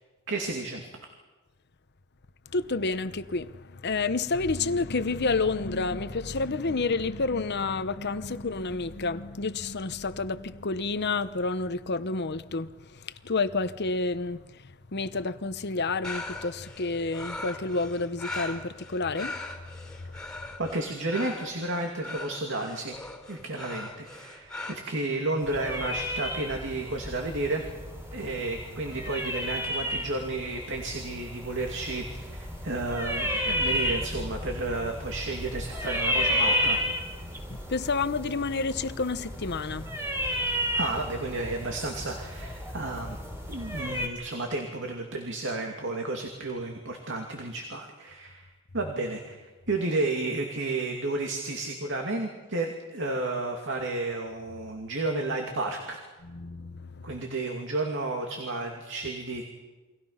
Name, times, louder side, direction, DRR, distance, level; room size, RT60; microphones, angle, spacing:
voice 1, 0.3-0.8 20.6-22.9 23.3-27.7 28.1-36.8 40.7-43.2 43.5-48.5 48.7-56.0 57.0-59.5, right 2 dB, 60° right, 2.6 m, -32 dB
voice 2, 2.5-14.4 14.9-19.4 37.5-39.9 56.2-57.0, left 3 dB, 50° left, 1.0 m, -29 dB
sound 1, 16.0-24.7, left 2 dB, 5° left, 3.9 m, -40 dB
sound 2, 25.4-44.1, equal, 10° right, 3.8 m, -32 dB
29.5 x 23.5 x 5.8 m
head